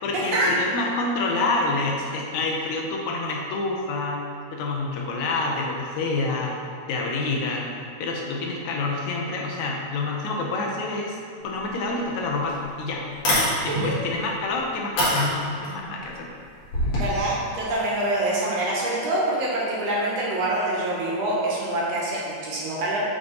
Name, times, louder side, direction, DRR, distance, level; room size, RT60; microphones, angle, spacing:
voice 1, 0.0-4.2 4.5-6.6 6.9-7.6 8.0-11.2 11.4-13.0 13.6-16.3, left 3 dB, 80° left, -1 dB, 2.1 m, -27 dB
sound 1, 12.0-12.1 12.5-12.6 13.1-13.5 14.2-14.3 15.0-15.7 16.6-17.1, left 1 dB, 60° left, 2.7 m, -22 dB
voice 2, 13.6-14.0 17.0-23.0, right 1 dB, 65° right, -5 dB, 1.9 m, -25 dB
7.5 x 3.6 x 3.8 m, 2.5 s
omnidirectional pair, 3.4 m